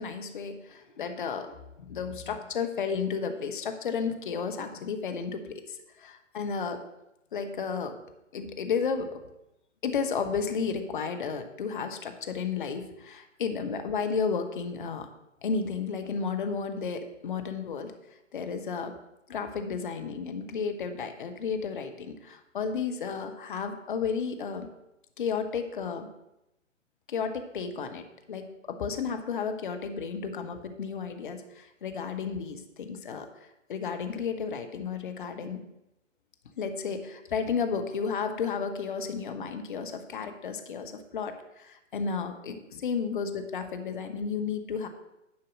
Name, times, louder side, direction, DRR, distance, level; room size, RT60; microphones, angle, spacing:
voice 1, 0.0-6.8 7.3-8.0 8.3-9.2 9.8-15.1 15.4-17.9 18.3-18.9 19.3-24.7 25.2-26.1 27.1-33.3 33.7-35.6 36.6-44.9, left 5 dB, 40° left, 7 dB, 1.0 m, -33 dB
10.5 x 4.6 x 6.3 m, 0.90 s
figure-of-eight pair, 135°, 39 cm